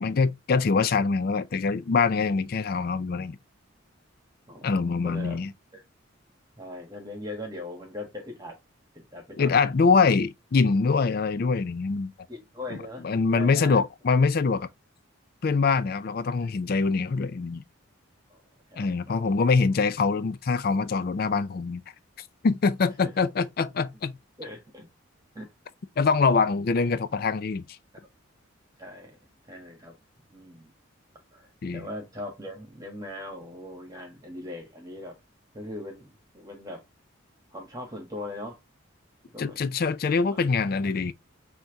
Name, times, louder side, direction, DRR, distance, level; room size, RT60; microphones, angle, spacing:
voice 1, 0.0-3.4 4.6-5.5 9.4-12.1 12.7-12.8 13.0-14.7 15.4-17.6 18.8-21.8 22.4-24.1 26.0-27.6 31.6-31.9 39.4-41.1, left 4 dB, 45° left, 0.4 m, -24 dB
voice 2, 4.5-5.5 5.7-5.8 6.6-8.6 8.9-9.6 12.3-13.8 18.3-18.4 18.7-19.6 23.0-23.1 24.4-24.9 25.3-25.5 28.8-29.1 29.5-30.0 30.3-30.7 31.3-35.2 35.5-36.8 37.5-38.6 39.3-39.6 40.3-40.4, left 1 dB, 20° right, 1.4 m, -40 dB
5.7 x 2.9 x 2.7 m
head